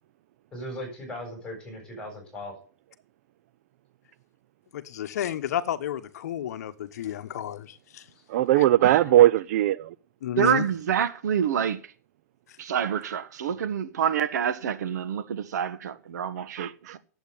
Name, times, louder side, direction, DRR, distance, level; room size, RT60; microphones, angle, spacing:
voice 1, 0.5-2.5 9.0-9.2, left 1 dB, 10° left, 7.5 m, -38 dB
voice 2, 4.7-8.0 10.2-10.6, left 11 dB, 65° left, 1.0 m, -31 dB
voice 3, 8.3-9.9 16.6-17.0, right 13 dB, 50° right, 0.5 m, -20 dB
voice 4, 10.4-11.8 12.6-17.0, right 8 dB, 75° right, 1.3 m, -27 dB
10.5 x 8.0 x 8.4 m
hypercardioid pair, 155°, 9 cm